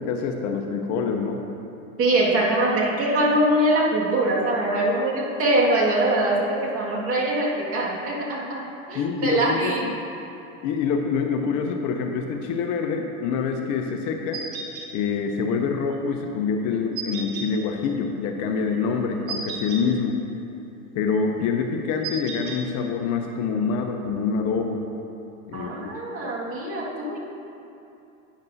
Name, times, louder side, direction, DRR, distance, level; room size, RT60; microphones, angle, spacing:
voice 1, 0.0-1.4 8.9-9.9 10.6-14.4 14.9-20.2 20.9-24.8 25.5-25.7, left 5 dB, 45° left, 4 dB, 0.8 m, -26 dB
voice 2, 2.0-9.8 25.5-27.2, right 1 dB, 35° right, -4 dB, 1.9 m, -23 dB
sound 1, 14.3-14.9 16.9-17.5 19.3-19.8 22.0-22.6, right 5 dB, 70° right, 1.7 m, -33 dB
11.5 x 9.1 x 2.7 m, 2.7 s
hypercardioid pair, 115°, 42 cm